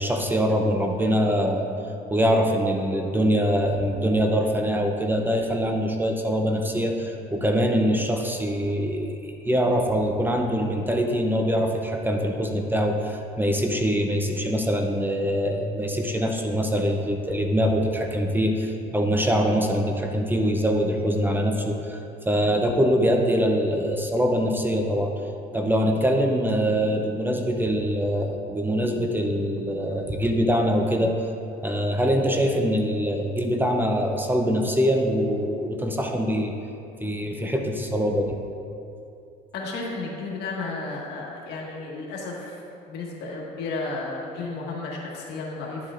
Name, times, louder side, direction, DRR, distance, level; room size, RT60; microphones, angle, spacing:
voice 1, 0.0-1.7 2.1-22.0 22.3-25.1 25.5-31.1 31.6-36.5 37.0-38.3, equal, 10° right, 3 dB, 0.6 m, -23 dB
voice 2, 39.5-45.9, left 3 dB, 75° left, -3 dB, 1.6 m, -33 dB
10.5 x 7.5 x 2.5 m, 2.6 s
cardioid pair, 110°, 17 cm